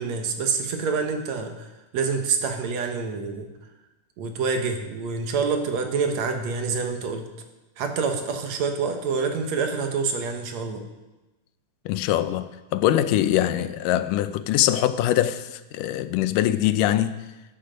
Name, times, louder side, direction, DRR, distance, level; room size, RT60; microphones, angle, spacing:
voice 1, 0.0-3.5 4.2-7.3 7.8-10.8, right 5 dB, 65° right, 2.2 m, -27 dB
voice 2, 11.9-17.2, left 12 dB, 85° left, 2.3 m, -23 dB
13.5 x 10.5 x 5.2 m
omnidirectional pair, 3.7 m